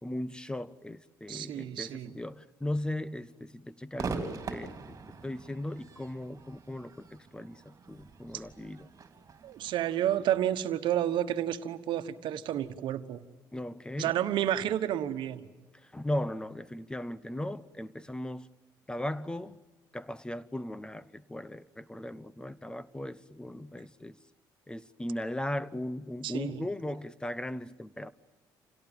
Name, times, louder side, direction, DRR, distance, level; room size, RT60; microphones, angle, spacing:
voice 1, 0.0-5.0 5.2-8.9 13.5-14.1 15.7-18.5 18.9-19.6 19.9-24.2 24.7-28.1, left 1 dB, 10° left, 0.8 m, -37 dB
voice 2, 1.3-2.1 8.3-8.4 9.4-13.2 14.0-15.5 26.2-26.6, right 11 dB, 75° right, 1.3 m, -30 dB
Crowd / Fireworks, 4.0-11.3, right 4 dB, 40° right, 3.4 m, -43 dB
27.5 x 17.5 x 9.1 m
cardioid pair, 90°, 8 cm